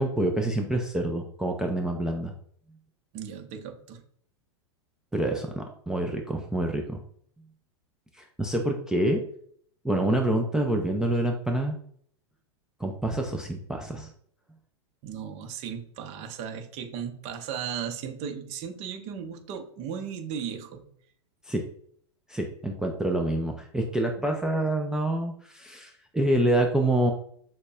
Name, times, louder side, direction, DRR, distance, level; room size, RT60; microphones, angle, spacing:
voice 1, 0.0-2.3 5.1-7.0 8.1-9.2 9.8-11.8 12.8-14.1 21.5-21.6 22.3-27.1, right 1 dB, 5° right, 1 dB, 0.3 m, -27 dB
voice 2, 3.1-4.0 15.0-20.8 24.2-24.3, right 7 dB, 45° right, 6 dB, 0.7 m, -36 dB
6.3 x 2.1 x 2.3 m, 0.62 s
hypercardioid pair, 115°, 16 cm